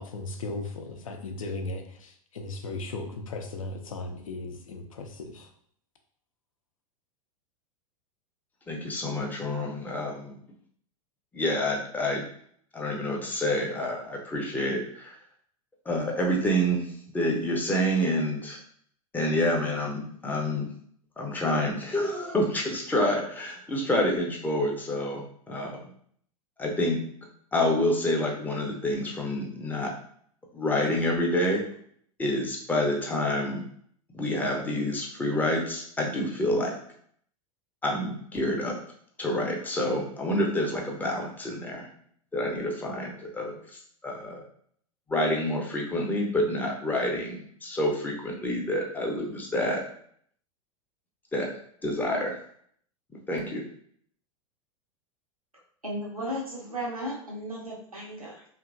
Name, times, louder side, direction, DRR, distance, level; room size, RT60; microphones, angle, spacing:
voice 1, 0.0-5.5, left 2 dB, 70° left, 5 dB, 0.5 m, -37 dB
voice 2, 8.7-10.3 11.3-12.3 12.7-15.2 15.9-18.6 19.1-20.7 21.2-25.8 26.6-27.0 27.5-29.9 30.5-31.6 32.2-33.6 34.1-36.8 37.8-38.8 39.2-41.9 42.3-44.4 45.1-49.8 51.3-51.5 51.8-52.4 53.3-53.7, left 1 dB, 10° left, -1 dB, 0.5 m, -28 dB
voice 3, 55.8-58.5, equal, 90° right, -4 dB, 0.9 m, -35 dB
2.8 x 2.5 x 2.4 m, 0.62 s
figure-of-eight pair, 90°, 18 cm